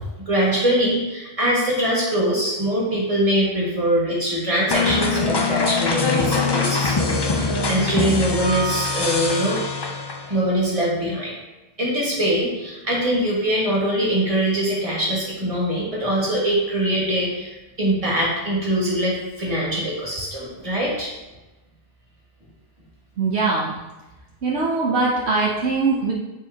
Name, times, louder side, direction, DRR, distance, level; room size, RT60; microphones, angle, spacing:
voice 1, 0.3-9.7 10.3-11.3 11.8-21.1, equal, 30° right, -5 dB, 2.0 m, -23 dB
sound 1, 4.7-10.4, left 3 dB, 35° left, 0.4 m, -23 dB
voice 2, 23.2-23.7 24.4-26.1, right 3 dB, 70° right, -4 dB, 1.1 m, -21 dB
8.7 x 4.6 x 2.9 m, 1.1 s
omnidirectional pair, 1.2 m